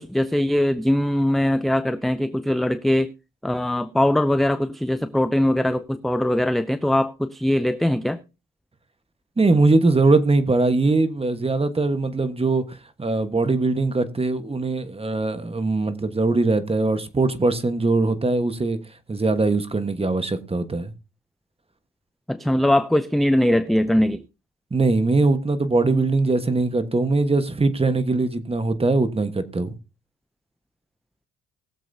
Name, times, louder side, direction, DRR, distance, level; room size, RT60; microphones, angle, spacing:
voice 1, 0.0-3.1 3.4-8.2 22.3-24.2, left 1 dB, ahead, 0.5 m, -21 dB
voice 2, 9.4-18.8 19.1-20.9 24.7-29.7, right 3 dB, 20° right, 1.3 m, -21 dB
20.5 x 7.4 x 2.8 m
cardioid pair, 90°, 30 cm